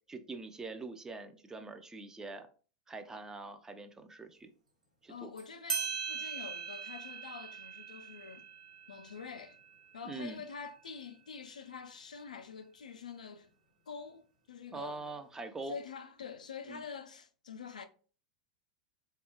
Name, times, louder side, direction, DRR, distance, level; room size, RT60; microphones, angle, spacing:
voice 1, 0.1-2.5 2.9-4.5 5.0-5.3 10.1-10.4 14.7-15.8 16.7-16.8, right 3 dB, 15° right, 0.4 m, -43 dB
voice 2, 5.1-8.5 8.9-9.6 9.9-13.5 13.9-15.2 15.7-17.8, left 6 dB, 90° left, 0.3 m, -46 dB
sound 1, 5.4-5.5 5.7-10.8, right 6 dB, 90° right, 0.9 m, -41 dB
3.4 x 2.3 x 2.8 m
hypercardioid pair, 100°, 4 cm